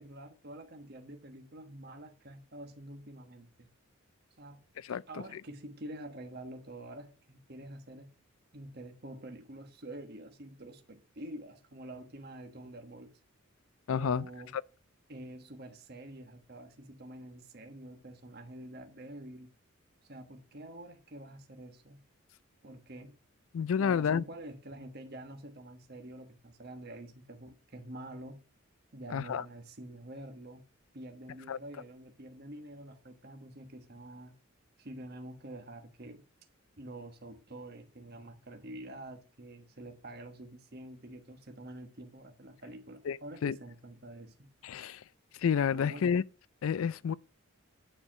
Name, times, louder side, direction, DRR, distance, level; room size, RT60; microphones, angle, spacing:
voice 1, 0.0-3.7 4.4-4.6 4.9-8.1 8.5-13.1 13.9-14.5 15.1-19.5 20.0-22.0 22.6-23.2 23.8-28.4 28.9-30.6 30.9-34.4 34.8-36.3 36.8-44.5 45.7-46.1, right 1 dB, 45° right, 1.3 m, -47 dB
voice 2, 13.9-14.3 14.5-14.6 23.5-24.2 29.1-29.4 31.5-31.6 43.1-43.2 43.4-43.6 44.6-45.0 45.4-46.2 46.6-47.1, left 7 dB, 75° left, 0.4 m, -29 dB
9.8 x 4.6 x 6.2 m
head